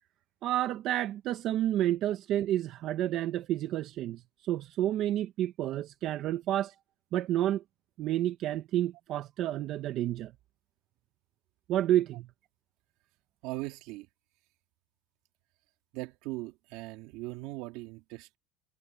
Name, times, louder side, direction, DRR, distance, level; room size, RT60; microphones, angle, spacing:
voice 1, 0.4-6.7 7.1-7.6 8.0-10.3 11.7-12.3, right 12 dB, 45° right, 0.7 m, -30 dB
voice 2, 13.4-14.1 15.9-18.4, right 19 dB, 65° right, 2.6 m, -39 dB
cardioid pair, 170°, 0 cm